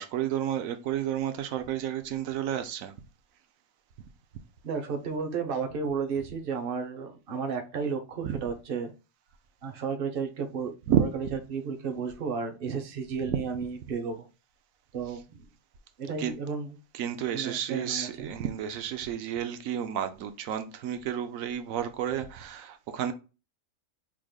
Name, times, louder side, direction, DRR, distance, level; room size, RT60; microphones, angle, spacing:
voice 1, 0.0-2.9 8.2-8.4 10.9-11.0 13.3-13.4 16.2-16.3 16.9-23.1, right 9 dB, 85° right, 1.0 m, -31 dB
voice 2, 4.6-8.9 9.6-10.7 11.0-14.3 14.9-15.4 16.0-16.8 17.3-18.3, right 5 dB, 50° right, 0.9 m, -33 dB
4.8 x 3.6 x 2.3 m
omnidirectional pair, 1.4 m